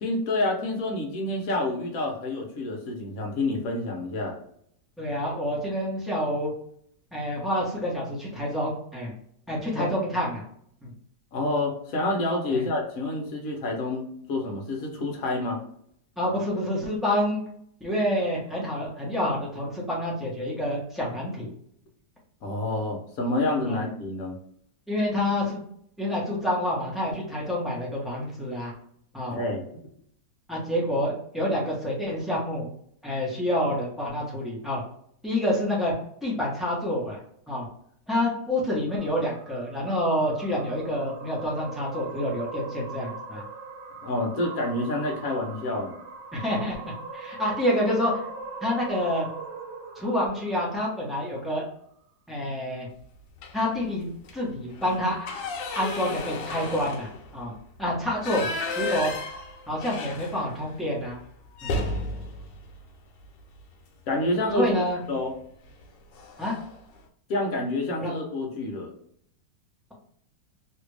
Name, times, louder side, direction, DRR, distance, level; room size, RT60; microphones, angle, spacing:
voice 1, 0.0-4.4 9.8-9.9 11.3-15.6 22.4-24.4 29.3-29.6 44.0-46.0 64.1-64.7 65.1-65.3 67.3-68.9, left 2 dB, 60° left, 1 dB, 1.2 m, -28 dB
voice 2, 5.0-6.5 7.1-9.1 9.5-10.4 10.8-10.9 12.5-12.7 16.2-17.4 17.8-21.5 23.6-23.8 24.9-25.6 26.0-28.7 29.1-29.4 30.5-32.7 33.0-34.8 35.2-35.9 36.2-37.2 37.5-37.7 38.1-43.4 46.3-46.8 47.1-48.3 48.6-49.3 49.9-51.7 52.3-52.9 53.5-54.0 54.3-55.3 55.6-57.5 57.8-58.5 58.8-59.1 59.7-61.2 61.6-61.7 64.5-65.0 66.4-66.6 68.0-68.1, left 1 dB, ahead, -6 dB, 0.7 m, -28 dB
sound 1, 38.9-51.4, right 3 dB, 85° right, 1.3 m, -40 dB
sound 2, 53.4-53.8 54.2-54.3 54.7-60.7 61.0-61.1 61.5-63.7 65.0-65.3 65.7-65.8 66.1-66.8, left 2 dB, 85° left, 1.3 m, -34 dB
3.3 x 2.4 x 3.2 m, 0.67 s
omnidirectional pair, 1.9 m